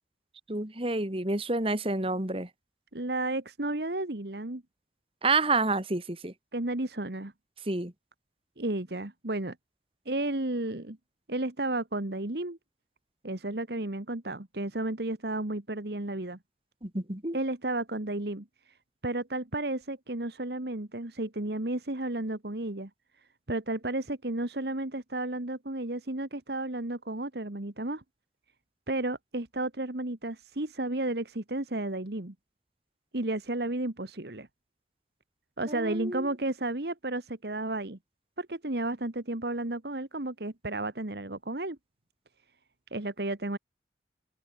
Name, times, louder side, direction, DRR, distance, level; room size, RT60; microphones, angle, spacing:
voice 1, 0.5-2.5 5.2-6.3 7.7-7.9 16.8-17.4 35.7-36.3, right 3 dB, 30° right, 2.2 m, -29 dB
voice 2, 2.9-4.6 6.5-7.3 8.6-9.5 10.0-11.0 11.3-12.6 13.2-16.4 17.3-18.7 19.0-22.9 23.5-28.0 28.9-32.3 33.1-34.5 35.6-38.0 38.4-41.8 42.9-43.6, right 2 dB, 60° right, 1.6 m, -32 dB
open air
head